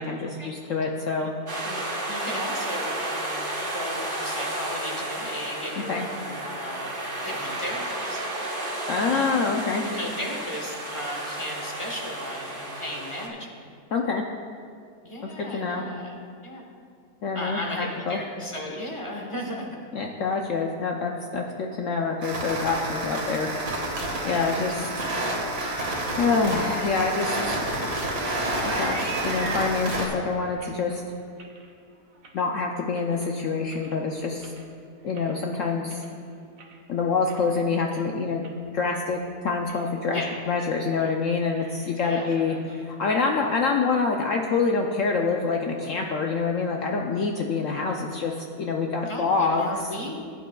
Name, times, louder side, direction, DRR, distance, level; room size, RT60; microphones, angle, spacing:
voice 1, 0.0-1.3 5.9-6.1 8.9-9.8 13.9-14.2 15.2-15.8 17.2-18.2 19.9-23.5 24.2-25.1 26.2-27.7 28.6-31.0 32.3-34.5 35.0-36.1 36.9-38.4 38.7-40.2 40.5-42.6 42.8-49.9, left 4 dB, 65° left, 1 dB, 0.8 m, -26 dB
sound 1, 1.5-13.3, right 1 dB, 35° right, 1.2 m, -32 dB
voice 2, 1.6-3.4 3.7-8.2 9.0-9.5 9.8-13.7 15.0-16.2 16.4-16.6 17.3-19.8 24.3-25.1 40.1-40.3 42.0-42.8 49.1-50.1, left 1 dB, 20° left, 0 dB, 1.1 m, -36 dB
sound 2, 22.2-30.1, right 1 dB, 85° right, 2.2 m, -29 dB
sound 3, 26.8-33.3 33.6-34.1 34.4-36.8 37.1-37.6 37.9-38.0 38.4-39.2 39.5-39.9 40.3-40.5 40.8-41.2 41.4-43.3, right 4 dB, 60° right, 1.2 m, -42 dB
16.0 x 8.2 x 2.3 m, 2.2 s
omnidirectional pair, 1.7 m